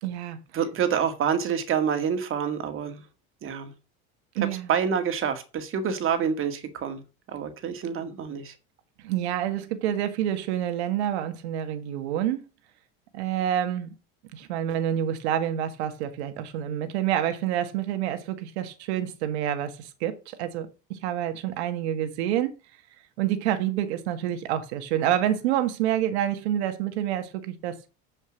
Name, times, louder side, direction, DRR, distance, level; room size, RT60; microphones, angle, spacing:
voice 1, 0.0-0.4 4.4-4.7 9.0-12.4 13.1-13.9 14.3-22.5 23.2-27.8, right 11 dB, 90° right, 1.6 m, -28 dB
voice 2, 0.5-3.0 3.4-3.7 4.7-7.0 7.3-8.5, right 7 dB, 40° right, 2.0 m, -27 dB
8.3 x 5.3 x 6.3 m
supercardioid pair, 120°, 32 cm